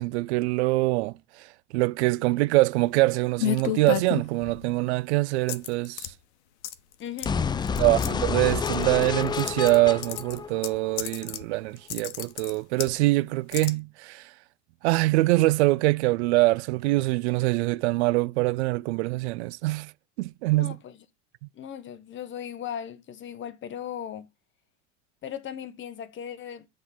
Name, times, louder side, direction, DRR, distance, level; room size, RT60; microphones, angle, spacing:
voice 1, 0.0-1.5 1.7-6.1 7.8-14.3 14.8-19.9 20.2-20.8, right 21 dB, 70° right, 0.5 m, -24 dB
sound 1, 3.4-4.7 5.5-6.1 6.6-6.9 7.2-7.3 7.6-8.1 8.7-9.8 10.0-11.4 11.8-12.9 13.5-13.7, left 13 dB, 70° left, 1.0 m, -31 dB
voice 2, 7.0-7.5 20.5-21.0 21.5-24.3 25.2-26.7, left 9 dB, 35° left, 1.1 m, -37 dB
sound 2, 7.2-11.2, left 6 dB, 15° left, 0.4 m, -29 dB
7.7 x 3.8 x 5.7 m
hypercardioid pair, 90°, 35 cm